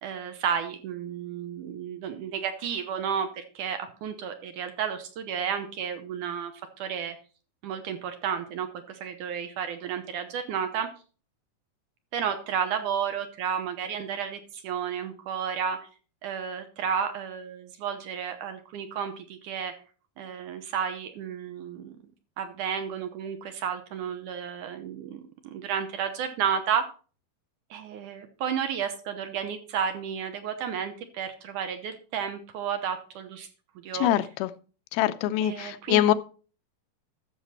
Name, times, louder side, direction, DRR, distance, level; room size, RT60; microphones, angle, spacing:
voice 1, 0.0-6.5 6.8-7.2 7.6-10.9 12.1-15.8 16.2-19.7 20.2-22.0 22.4-26.8 27.7-33.5 33.8-34.1 35.4-36.1, right 7 dB, 70° right, 8 dB, 2.1 m, -32 dB
voice 2, 34.0-34.5 34.9-36.1, left 13 dB, 90° left, 13 dB, 2.5 m, -24 dB
13.0 x 6.6 x 4.2 m, 0.37 s
omnidirectional pair, 4.3 m